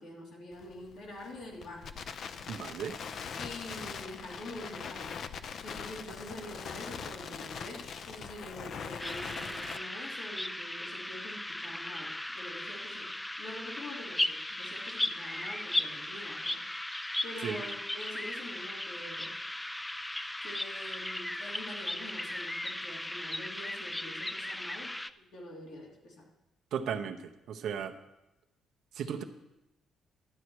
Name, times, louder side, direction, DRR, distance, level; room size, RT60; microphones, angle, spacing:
voice 1, 0.0-1.9 3.4-5.2 5.6-13.1 13.4-16.6 17.2-19.3 20.4-26.3 29.0-29.1, left 1 dB, 80° left, -3 dB, 2.9 m, -46 dB
Crackle, 0.5-9.8, left 6 dB, 60° left, 0.6 m, -42 dB
voice 2, 2.5-3.0 17.4-17.6 26.7-28.0 28.9-29.2, right 7 dB, 75° right, 5 dB, 0.8 m, -36 dB
sound 1, 9.0-25.1, left 1 dB, 10° left, 0.4 m, -37 dB
12.0 x 8.3 x 4.6 m, 0.94 s
cardioid pair, 90°, 0 cm